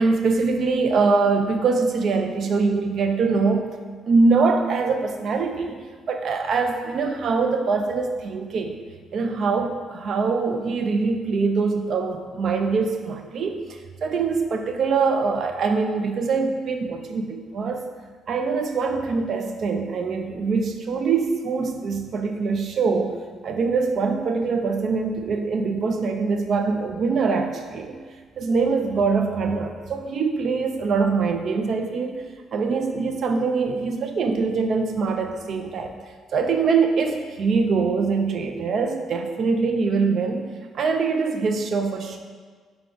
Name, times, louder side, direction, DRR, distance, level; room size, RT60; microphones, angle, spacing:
voice 1, 0.0-3.7 4.1-8.8 9.1-13.6 14.0-17.9 18.3-23.2 23.4-28.1 28.4-32.3 32.5-35.9 36.3-42.2, right 4 dB, 45° right, 5 dB, 0.3 m, -23 dB
3.6 x 3.4 x 3.7 m, 1.5 s
cardioid pair, 165°, 0 cm